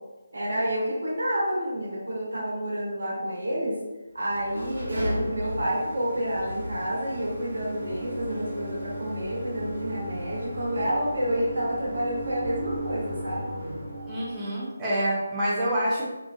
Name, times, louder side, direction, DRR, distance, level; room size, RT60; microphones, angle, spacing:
voice 1, 0.3-3.8 4.1-13.5, equal, 85° right, -4 dB, 1.1 m, -29 dB
sound 1, 4.2-14.5, right 1 dB, 55° right, 1.3 m, -35 dB
voice 2, 14.1-16.1, equal, 10° right, -10 dB, 0.6 m, -27 dB
2.7 x 2.6 x 2.3 m, 1.1 s
figure-of-eight pair, 165°, 0 cm